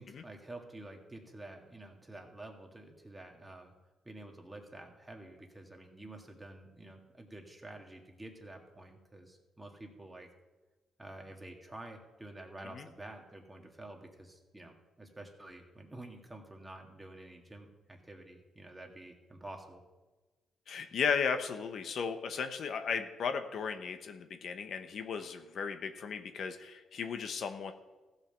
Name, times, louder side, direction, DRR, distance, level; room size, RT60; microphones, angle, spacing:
voice 1, 0.0-3.7 4.0-10.3 11.0-19.8, right 1 dB, 15° right, 2 dB, 2.0 m, -49 dB
voice 2, 20.7-27.7, left 6 dB, 60° left, 7 dB, 0.9 m, -35 dB
15.0 x 5.6 x 6.8 m, 1.2 s
cardioid pair, 90°, 0 cm